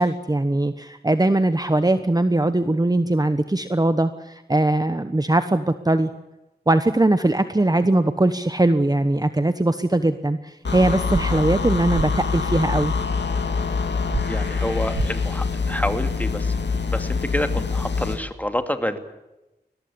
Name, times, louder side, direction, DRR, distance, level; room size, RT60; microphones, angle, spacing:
voice 1, 0.0-6.1 6.7-12.9, right 2 dB, 20° right, 10 dB, 1.1 m, -20 dB
sound 1, 10.7-18.2, left 5 dB, 80° left, 2.4 m, -25 dB
sound 2, 11.1-11.2 11.9-12.1 14.1-14.2 14.9-15.1, right 5 dB, 70° right, 1.1 m, -26 dB
voice 2, 14.3-19.0, equal, 10° left, 7 dB, 2.6 m, -28 dB
22.0 x 18.5 x 8.6 m, 0.98 s
wide cardioid pair, 60°, 18 cm